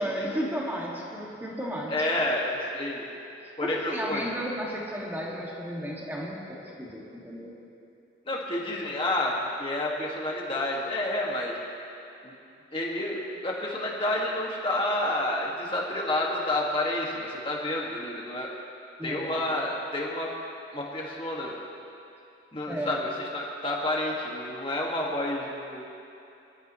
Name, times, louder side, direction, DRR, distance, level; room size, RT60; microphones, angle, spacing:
voice 1, 0.0-1.9 3.6-7.5 19.0-19.6 22.7-23.0, equal, 10° right, -4 dB, 2.2 m, -33 dB
voice 2, 1.9-3.1 3.6-4.2 8.3-11.6 12.2-12.3 12.7-18.5 19.0-20.3 20.7-21.5 22.5-25.9, left 1 dB, 25° left, -3 dB, 2.0 m, -29 dB
25.0 x 13.0 x 3.2 m, 2.7 s
head